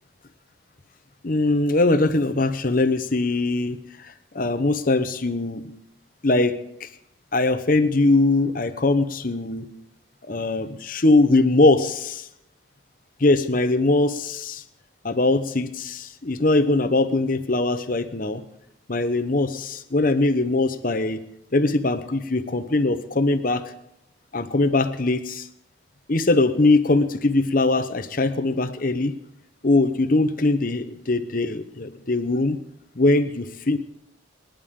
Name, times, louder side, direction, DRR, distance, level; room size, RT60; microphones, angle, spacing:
voice 1, 1.2-5.6 6.2-6.9 7.3-9.7 10.3-12.3 13.2-14.6 15.0-18.4 18.9-21.2 21.5-23.6 24.3-25.5 26.1-29.1 29.6-32.6 33.0-33.8, left 2 dB, 45° left, 9 dB, 0.9 m, -21 dB
28.0 x 10.5 x 3.7 m, 0.83 s
head